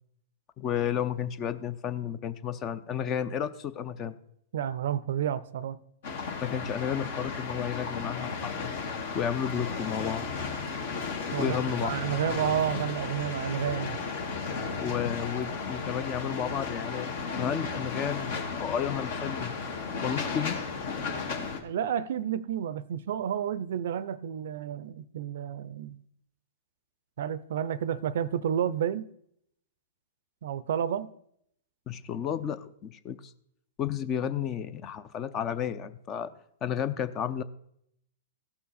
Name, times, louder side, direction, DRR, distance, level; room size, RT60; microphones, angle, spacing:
voice 1, 0.6-4.1 6.4-8.7 9.1-10.3 11.4-11.9 14.8-19.5 20.0-20.6 31.9-33.3 33.8-36.3 36.6-37.4, left 8 dB, 30° left, 0.6 m, -32 dB
voice 2, 4.5-5.8 11.3-14.0 21.6-26.0 27.2-29.1 30.4-31.1, right 9 dB, 65° right, 0.5 m, -30 dB
sound 1, 6.0-21.6, left 4 dB, 65° left, 1.7 m, -34 dB
15.5 x 5.8 x 4.1 m
hypercardioid pair, 120°, 0 cm